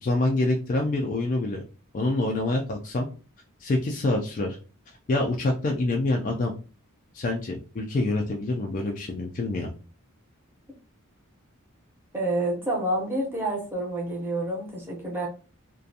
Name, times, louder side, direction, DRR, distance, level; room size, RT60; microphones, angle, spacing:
voice 1, 0.0-1.6 1.9-3.1 3.6-4.6 5.1-6.5 7.1-9.7, left 2 dB, 35° left, 1 dB, 0.3 m, -26 dB
voice 2, 12.1-15.3, right 1 dB, 10° right, -3 dB, 0.6 m, -28 dB
2.4 x 2.2 x 2.7 m, 0.35 s
head